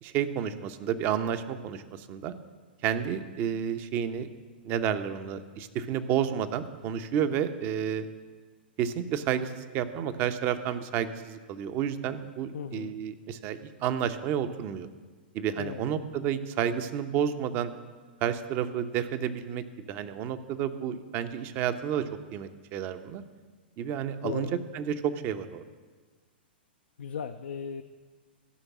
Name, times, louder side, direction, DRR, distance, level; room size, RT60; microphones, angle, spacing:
voice 1, 0.0-2.3 2.8-4.3 4.6-8.1 8.8-14.9 15.3-17.7 18.2-23.2 23.8-25.6, right 9 dB, 35° right, 10 dB, 0.8 m, -31 dB
voice 2, 12.5-12.9 15.6-15.8 24.2-24.5 27.0-27.8, left 7 dB, 75° left, 6 dB, 0.5 m, -36 dB
15.5 x 5.3 x 7.2 m, 1.4 s
hypercardioid pair, 110°, 6 cm